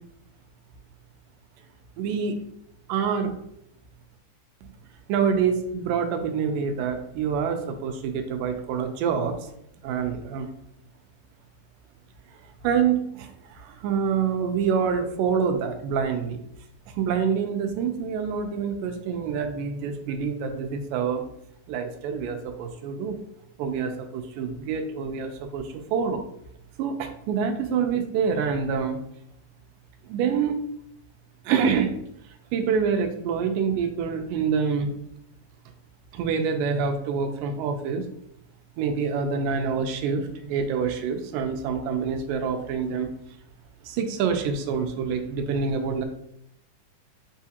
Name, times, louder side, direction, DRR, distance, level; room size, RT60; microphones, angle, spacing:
voice 1, 2.0-2.4 2.9-3.4 5.1-9.4 9.8-10.5 12.6-16.4 17.0-21.2 21.7-23.2 23.6-26.2 26.8-29.0 30.0-30.6 31.5-32.0 32.5-34.9 36.1-38.1 38.8-43.2 43.8-46.1, right 6 dB, 85° right, 6 dB, 2.1 m, -26 dB
6.9 x 2.4 x 2.8 m, 0.75 s
omnidirectional pair, 3.8 m